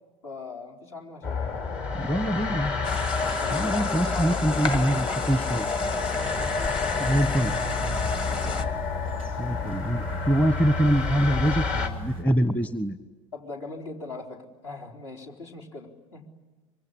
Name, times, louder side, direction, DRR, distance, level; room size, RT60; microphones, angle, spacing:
voice 1, 0.2-1.8 3.2-7.4 8.3-9.0 13.3-16.3, left 4 dB, 65° left, 1 dB, 4.3 m, -41 dB
sound 1, 1.2-11.9, left 4 dB, 50° left, 3.6 m, -29 dB
voice 2, 1.9-2.7 3.5-5.7 7.0-7.5 9.4-13.0, right 1 dB, 10° left, 12 dB, 1.1 m, -24 dB
sound 2, 2.8-8.7, left 3 dB, 30° left, 2.1 m, -32 dB
sound 3, 7.2-12.2, equal, 85° left, 6.2 m, -36 dB
25.5 x 23.5 x 10.0 m, 1.3 s
figure-of-eight pair, 75°, 17 cm